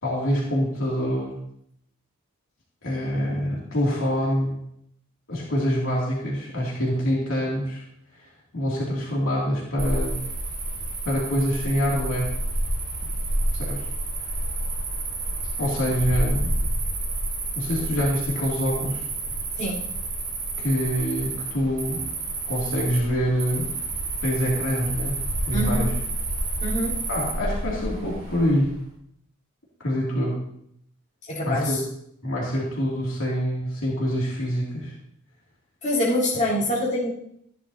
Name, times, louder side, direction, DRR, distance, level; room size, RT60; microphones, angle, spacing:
voice 1, 0.0-1.3 2.8-4.5 5.3-7.8 8.2-8.3 8.5-10.2 11.0-12.3 13.5-13.9 15.6-16.5 17.6-19.0 20.6-22.0 22.5-23.7 24.2-25.2 25.5-25.9 27.1-28.7 29.8-30.4 31.4-31.8 32.2-34.9, equal, 65° left, -4 dB, 2.7 m, -25 dB
Cricket, 9.8-28.7, right 2 dB, 40° right, 5.3 m, -29 dB
voice 2, 25.5-25.9 26.6-27.0 31.3-31.8 35.8-37.1, left 1 dB, 35° left, -7 dB, 3.8 m, -25 dB
15.0 x 11.0 x 2.8 m, 0.73 s
head